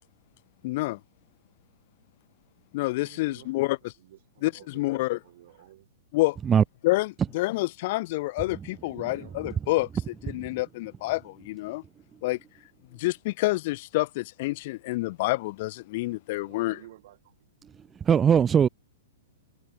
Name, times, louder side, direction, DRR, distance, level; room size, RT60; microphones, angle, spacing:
voice 1, 0.6-1.0 2.7-3.8 4.4-5.2 6.1-6.4 6.8-9.9 10.2-11.8 12.2-12.4 13.0-16.8, left 20 dB, 50° left, 0.5 m, -28 dB
voice 2, 2.9-3.7 4.0-5.9 8.7-9.4 16.3-17.5, right 14 dB, 60° right, 6.5 m, -52 dB
voice 3, 18.0-18.7, right 7 dB, 15° right, 0.5 m, -20 dB
hypercardioid pair, 145°, 0 cm